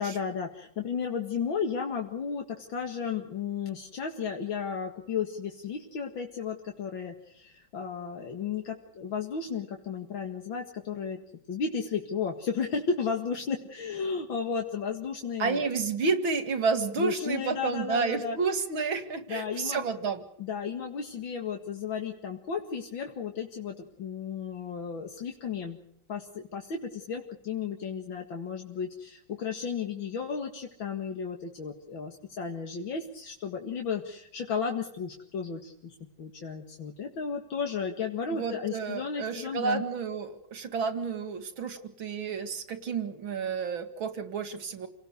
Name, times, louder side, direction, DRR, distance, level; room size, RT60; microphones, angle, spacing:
voice 1, 0.0-11.2 11.5-15.7 17.0-18.4 19.3-19.8 20.4-25.8 26.1-39.8, left 6 dB, 75° left, 3 dB, 2.7 m, -34 dB
voice 2, 15.4-20.2 38.3-44.9, right 5 dB, 85° right, 10 dB, 2.9 m, -30 dB
29.0 x 19.0 x 6.6 m, 0.72 s
omnidirectional pair, 2.1 m